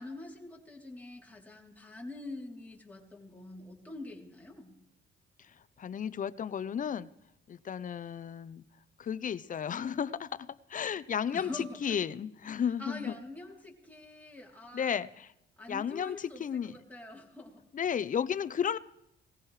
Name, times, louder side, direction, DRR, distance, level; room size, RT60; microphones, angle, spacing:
voice 1, 0.0-4.8 11.3-12.0 12.8-15.0 15.6-17.6, left 2 dB, 10° left, -1 dB, 3.3 m, -45 dB
voice 2, 5.8-7.1 7.5-8.6 9.0-13.2 14.7-15.3 15.7-16.7 17.7-18.8, left 8 dB, 40° left, 16 dB, 0.6 m, -33 dB
19.0 x 15.5 x 3.3 m, 0.81 s
cardioid pair, 90°, 20 cm